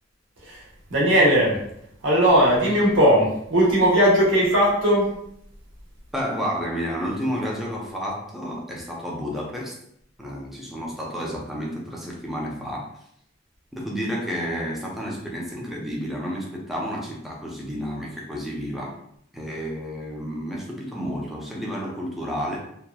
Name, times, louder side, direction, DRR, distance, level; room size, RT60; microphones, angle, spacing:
voice 1, 0.9-1.6 2.0-5.2, equal, 75° right, -4 dB, 1.0 m, -18 dB
voice 2, 6.1-9.7 10.2-12.9 13.7-19.0 19.3-22.6, equal, ahead, -3 dB, 0.5 m, -31 dB
2.8 x 2.3 x 2.2 m, 0.72 s
head